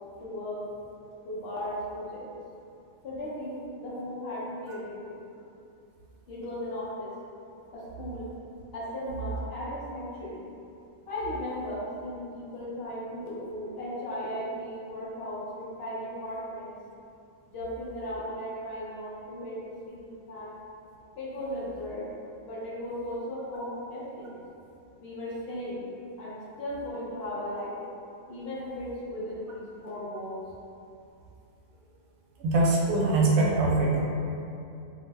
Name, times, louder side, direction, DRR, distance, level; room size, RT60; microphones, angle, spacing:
voice 1, 0.2-0.6 1.2-2.4 3.0-5.2 6.3-7.1 7.7-8.3 8.7-10.4 11.1-16.7 17.5-19.6 19.8-20.6 21.2-22.1 22.4-24.3 25.0-25.9 26.2-27.7 28.3-30.4, left 1 dB, 60° left, -7 dB, 0.7 m, -36 dB
voice 2, 32.4-34.0, right 2 dB, 85° right, -3 dB, 1.0 m, -23 dB
2.6 x 2.0 x 3.3 m, 2.7 s
omnidirectional pair, 1.4 m